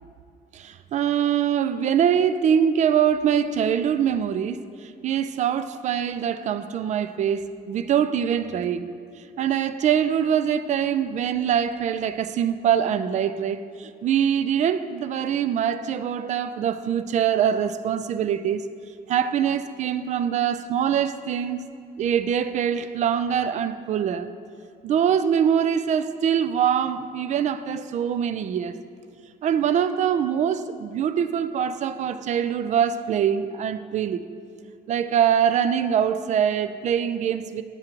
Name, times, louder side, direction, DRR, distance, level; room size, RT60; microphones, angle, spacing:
voice 1, 0.5-4.6 5.0-8.9 9.4-18.6 19.1-21.6 22.0-24.3 24.8-28.7 29.4-34.2 34.9-37.6, right 8 dB, 45° right, 0.4 m, -23 dB
8.9 x 3.7 x 4.5 m
cardioid pair, 110°, 17 cm